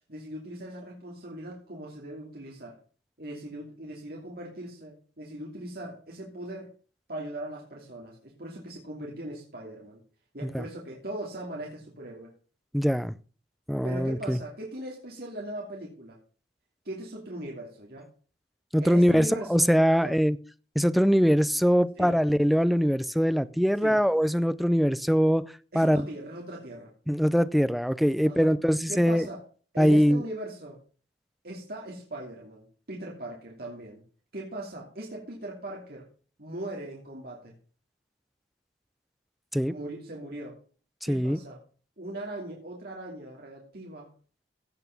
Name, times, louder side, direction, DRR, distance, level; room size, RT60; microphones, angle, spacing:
voice 1, 0.1-2.8 3.2-6.7 7.1-10.0 10.3-12.3 13.8-16.2 16.8-18.1 18.8-20.2 22.0-22.2 23.8-24.0 25.7-26.9 28.2-28.5 28.9-29.4 29.7-30.8 31.4-34.0 34.3-36.1 36.4-37.5 39.7-40.6 41.0-41.6 42.0-44.1, right 1 dB, 60° right, 2.8 m, -39 dB
voice 2, 12.7-13.1 13.7-14.4 18.7-20.4 20.8-25.5 25.7-26.1 27.1-29.3 29.8-30.2 39.5-39.8 41.1-41.4, equal, ahead, 0.5 m, -22 dB
16.5 x 5.9 x 5.9 m
head